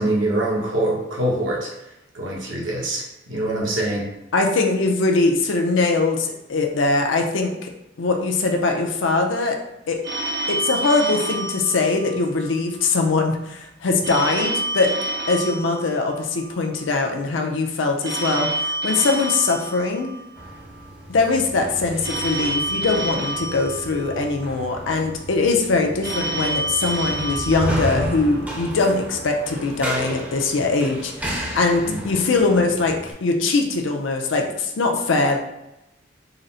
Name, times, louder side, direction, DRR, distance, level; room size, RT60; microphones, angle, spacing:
voice 1, 0.0-1.7 2.1-4.1 31.8-32.0, right 1 dB, 80° right, -3 dB, 1.1 m, -24 dB
voice 2, 4.3-7.7 8.0-9.6 9.9-10.0 10.5-14.9 15.3-20.1 21.1-35.4, left 3 dB, 80° left, 3 dB, 0.5 m, -21 dB
Telephone, 10.0-12.5 14.0-16.5 18.0-20.5 22.0-24.5 26.0-28.5, right 1 dB, 60° right, 0.5 m, -28 dB
sound 1, 20.4-33.1, right 1 dB, 10° right, 0.5 m, -33 dB
3.9 x 2.1 x 4.0 m, 0.90 s
head